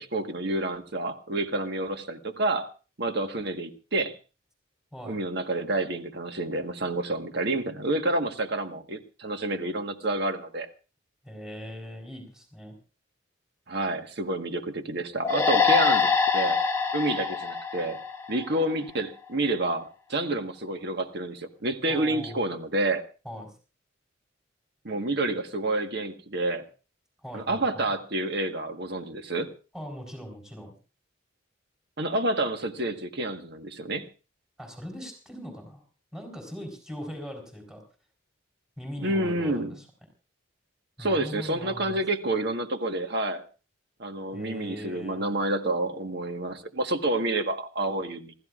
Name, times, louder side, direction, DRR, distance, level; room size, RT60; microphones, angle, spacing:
voice 1, 0.0-2.7 3.0-4.2 5.0-10.7 13.7-16.6 16.9-18.0 18.3-23.0 24.8-26.7 27.3-29.5 32.0-34.1 39.0-39.7 41.0-43.4 44.0-48.3, right 2 dB, 55° right, 6 dB, 1.5 m, -29 dB
voice 2, 11.2-12.8 21.9-22.5 23.2-23.5 27.2-27.9 29.7-30.7 34.6-35.8 36.1-37.8 38.8-39.9 41.0-42.0 44.3-45.2, equal, 5° right, 3 dB, 4.1 m, -40 dB
sound 1, 15.2-18.7, left 5 dB, 15° left, 1.3 m, -24 dB
27.5 x 14.0 x 2.5 m, 0.34 s
head